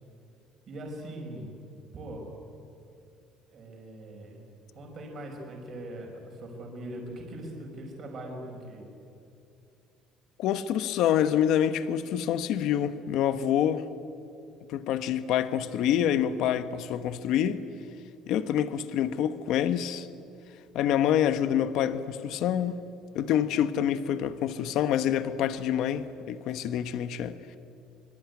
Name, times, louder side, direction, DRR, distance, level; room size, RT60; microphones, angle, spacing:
voice 1, 0.7-1.5 1.9-2.3 3.5-4.4 4.7-8.9, right 1 dB, 30° right, 5.4 m, -41 dB
voice 2, 10.4-13.9 14.7-17.6 18.3-20.1 20.7-22.7 23.1-27.4, left 10 dB, 60° left, 1.2 m, -27 dB
25.0 x 24.0 x 9.6 m
cardioid pair, 175°, 0 cm